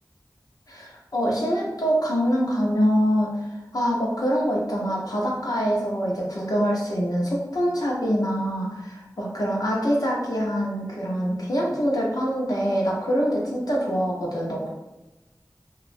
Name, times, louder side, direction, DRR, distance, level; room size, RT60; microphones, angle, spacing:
voice 1, 0.7-14.7, equal, 60° left, -3 dB, 0.7 m, -24 dB
2.9 x 2.3 x 2.5 m, 1.0 s
wide cardioid pair, 45°, 7 cm